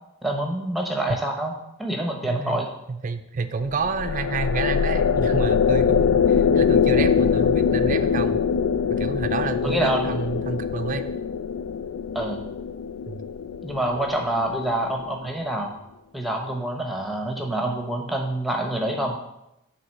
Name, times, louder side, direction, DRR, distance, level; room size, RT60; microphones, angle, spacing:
voice 1, 0.2-1.5 1.8-2.7 9.6-10.1 12.1-12.4 13.6-15.7 16.1-19.2, right 1 dB, ahead, 1 dB, 0.8 m, -26 dB
voice 2, 2.2-2.6 2.9-8.4 8.9-11.1 13.1-13.2, right 4 dB, 40° right, 9 dB, 0.4 m, -29 dB
sound 1, 3.6-15.1, left 6 dB, 85° left, 0.3 m, -23 dB
7.7 x 3.4 x 6.4 m, 0.85 s
head